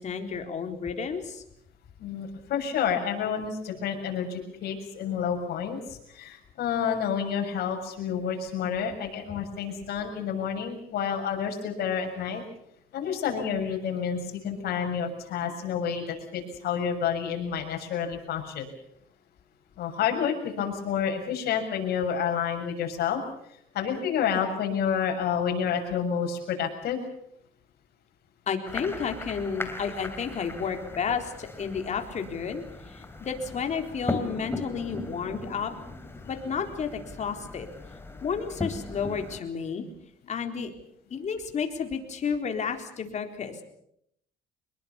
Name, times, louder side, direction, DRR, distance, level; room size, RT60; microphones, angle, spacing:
voice 1, 0.0-1.4 28.5-35.7 36.2-37.7 38.2-39.9 40.3-40.7 41.1-43.6, left 6 dB, 45° left, 5 dB, 4.0 m, -31 dB
voice 2, 2.0-12.4 12.9-18.7 19.8-23.2 23.7-27.0, left 7 dB, 70° left, 3 dB, 6.9 m, -29 dB
sound 1, 28.7-39.4, left 2 dB, 15° left, 3.1 m, -38 dB
25.0 x 21.5 x 7.1 m, 0.75 s
cardioid pair, 110°, 17 cm